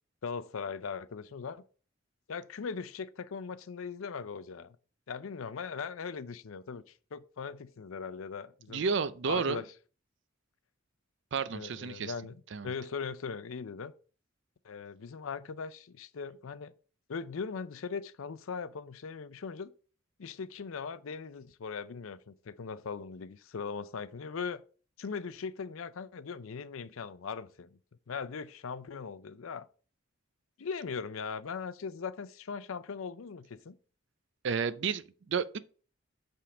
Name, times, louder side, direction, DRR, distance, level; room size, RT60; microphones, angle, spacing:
voice 1, 0.2-1.6 2.3-4.8 5.1-8.8 9.3-9.7 11.5-13.9 14.6-16.7 17.1-19.7 20.2-24.6 25.0-27.7 28.1-29.7 30.6-33.8, left 5 dB, 75° left, 0.5 m, -39 dB
voice 2, 8.7-9.6 11.3-12.1 12.5-12.7 34.4-35.6, right 5 dB, 55° right, 0.4 m, -31 dB
8.5 x 3.6 x 4.9 m
head